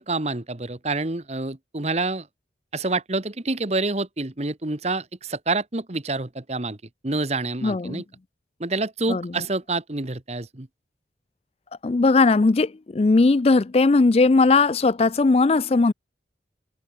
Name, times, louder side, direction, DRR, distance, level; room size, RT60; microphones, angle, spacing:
voice 1, 0.0-2.3 2.7-6.8 7.0-8.0 8.6-10.7, right 3 dB, 35° right, 1.2 m, -27 dB
voice 2, 7.6-8.0 9.1-9.3 11.8-15.9, left 3 dB, 35° left, 0.4 m, -18 dB
open air
head